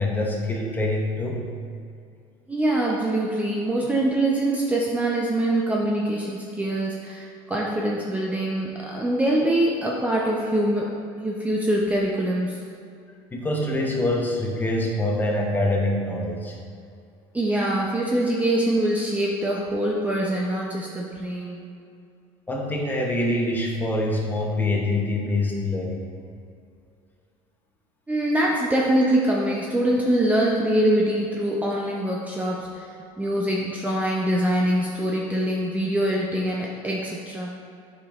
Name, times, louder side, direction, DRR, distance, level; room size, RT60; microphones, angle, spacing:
voice 1, 0.0-1.4 13.3-16.6 22.5-26.0, left 1 dB, 15° left, -1 dB, 0.9 m, -25 dB
voice 2, 2.5-10.9 11.2-12.6 17.3-21.6 28.1-32.7 33.2-37.6, right 1 dB, 10° right, -3 dB, 0.6 m, -24 dB
7.7 x 5.2 x 2.4 m, 2.4 s
supercardioid pair, 125°, 14 cm